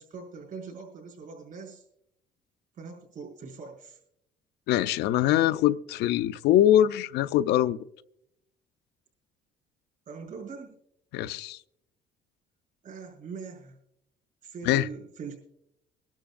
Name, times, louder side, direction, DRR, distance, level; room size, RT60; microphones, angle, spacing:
voice 1, 0.0-1.8 2.7-4.0 10.1-10.8 12.8-13.8 14.4-15.3, right 5 dB, 55° right, 5.9 m, -42 dB
voice 2, 4.7-7.8 11.1-11.6 14.7-14.9, left 12 dB, 80° left, 0.5 m, -23 dB
24.5 x 12.0 x 2.5 m
cardioid pair, 110°, 17 cm